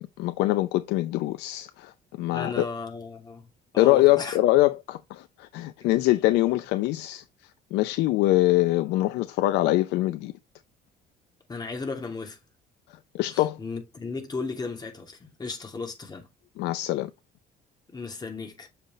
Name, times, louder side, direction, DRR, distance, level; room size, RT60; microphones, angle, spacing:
voice 1, 0.0-2.7 3.8-7.2 7.7-10.3 12.9-13.6 16.6-17.1, left 17 dB, 85° left, 0.5 m, -24 dB
voice 2, 2.3-3.5 3.7-4.4 11.5-12.4 13.3-16.3 17.9-18.7, left 4 dB, 25° left, 2.6 m, -35 dB
6.7 x 5.8 x 3.1 m
cardioid pair, 110°, 17 cm